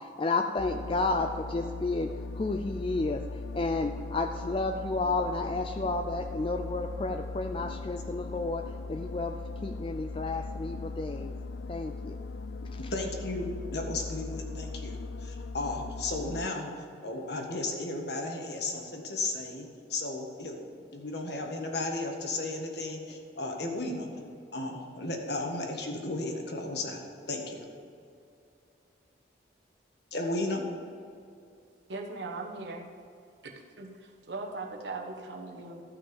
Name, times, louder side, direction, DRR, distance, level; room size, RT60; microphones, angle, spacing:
voice 1, 0.0-3.2 3.5-11.3 11.7-12.2 12.7-12.8, left 3 dB, 30° left, 5 dB, 0.4 m, -31 dB
sound 1, 0.6-16.5, left 3 dB, 85° left, 0.4 m, -39 dB
voice 2, 12.9-20.6 20.9-24.1 24.5-27.0 27.3-27.6 30.1-30.6, left 2 dB, 60° left, 2 dB, 1.6 m, -34 dB
voice 3, 31.9-32.9 33.4-35.8, right 3 dB, 70° right, 1 dB, 1.4 m, -39 dB
13.5 x 5.9 x 7.0 m, 2.5 s
head